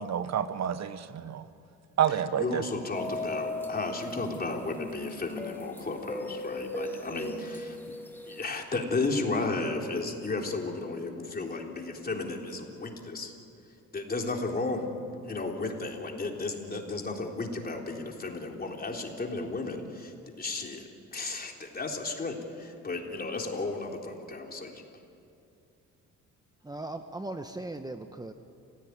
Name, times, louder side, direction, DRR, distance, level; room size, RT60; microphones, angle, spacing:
voice 1, 0.0-1.4 2.0-2.6, right 9 dB, 60° right, 12 dB, 1.3 m, -29 dB
voice 2, 2.4-7.8 8.3-13.3 13.9-14.9 15.2-20.1 20.4-24.7, left 3 dB, 30° left, 1 dB, 3.8 m, -33 dB
sound 1, 2.9-8.4, left 2 dB, 5° left, 3.0 m, -38 dB
voice 3, 26.6-28.3, right 2 dB, 15° right, 7 dB, 1.1 m, -38 dB
30.0 x 16.5 x 9.6 m, 2.5 s
cardioid pair, 90°, 30 cm